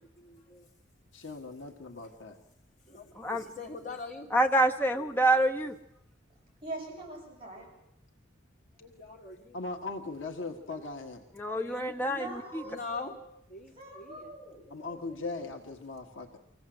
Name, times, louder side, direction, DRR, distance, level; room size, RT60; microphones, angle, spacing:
voice 1, 0.2-0.7 2.9-4.3 5.0-5.1 8.8-9.6 10.7-10.8 11.5-12.0 12.6-13.2 13.5-14.3 14.7-15.2, left 3 dB, 40° left, -1 dB, 3.5 m, -43 dB
voice 2, 1.1-2.4 9.5-11.3 14.7-16.4, left 3 dB, 75° left, 2 dB, 1.7 m, -39 dB
voice 3, 4.3-5.8 11.4-12.6, right 1 dB, 10° left, 4 dB, 1.2 m, -27 dB
voice 4, 6.6-7.6 12.0-13.2 13.7-14.6, right 2 dB, 30° right, -3 dB, 7.6 m, -42 dB
25.5 x 16.5 x 7.9 m, 0.83 s
head